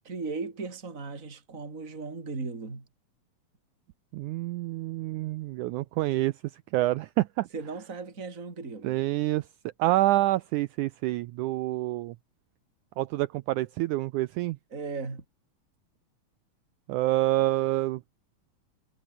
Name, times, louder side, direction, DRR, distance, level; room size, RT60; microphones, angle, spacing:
voice 1, 0.0-2.9 7.5-9.0 14.7-15.2, right 4 dB, 20° right, 3.9 m, -37 dB
voice 2, 4.1-7.5 8.8-9.5 9.8-12.2 13.0-14.6 16.9-18.0, right 17 dB, 85° right, 1.8 m, -27 dB
omnidirectional pair, 4.1 m